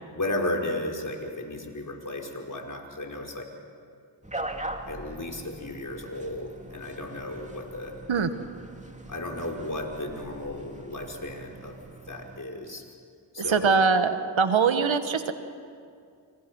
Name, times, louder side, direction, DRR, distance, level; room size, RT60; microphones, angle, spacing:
voice 1, 0.1-3.5 4.9-8.0 9.1-11.7 12.1-12.9 13.3-13.8, left 1 dB, 40° left, 1 dB, 5.2 m, -34 dB
sound 1, 4.2-12.4, right 2 dB, 15° right, 2.4 m, -41 dB
voice 2, 13.4-14.1 14.4-15.3, right 5 dB, 70° right, 9 dB, 1.6 m, -22 dB
29.0 x 28.0 x 6.3 m, 2.3 s
cardioid pair, 45°, 48 cm